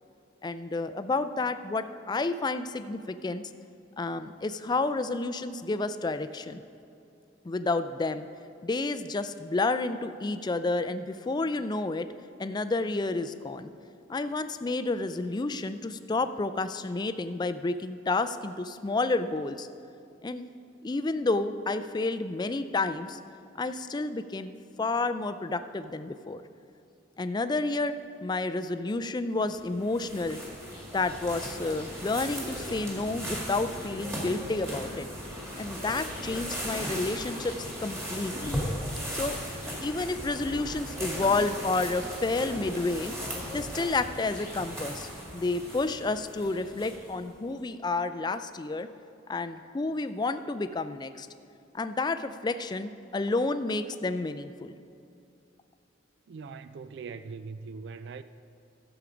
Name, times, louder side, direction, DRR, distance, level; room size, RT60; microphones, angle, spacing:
voice 1, 0.4-3.4 4.0-6.6 7.4-8.3 8.6-12.1 12.4-13.7 14.1-19.7 20.2-20.5 20.8-23.2 23.6-24.5 24.8-26.4 27.2-27.9 28.2-30.4 30.9-35.1 35.6-37.5 37.8-38.6 39.1-39.4 39.8-43.1 43.5-48.9 49.3-51.3 51.7-54.7, left 3 dB, 20° left, 0.3 m, -30 dB
sound 1, 29.5-47.2, equal, 15° right, 2.2 m, -37 dB
voice 2, 56.3-58.2, right 5 dB, 60° right, 0.3 m, -41 dB
13.0 x 7.2 x 5.0 m
head